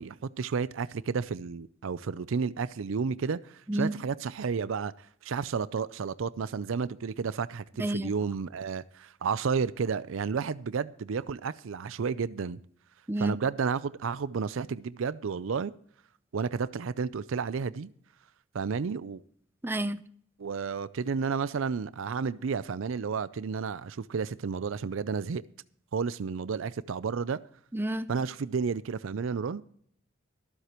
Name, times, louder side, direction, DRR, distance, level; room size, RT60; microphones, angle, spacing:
voice 1, 0.0-12.6 13.2-15.7 16.3-17.9 18.5-19.2 20.4-25.4 25.9-27.4 28.1-29.6, right 5 dB, 70° right, 0.5 m, -31 dB
voice 2, 7.8-8.1 13.1-13.4 19.6-20.0 27.7-28.1, right 1 dB, 10° right, 0.6 m, -29 dB
24.0 x 8.1 x 3.0 m
head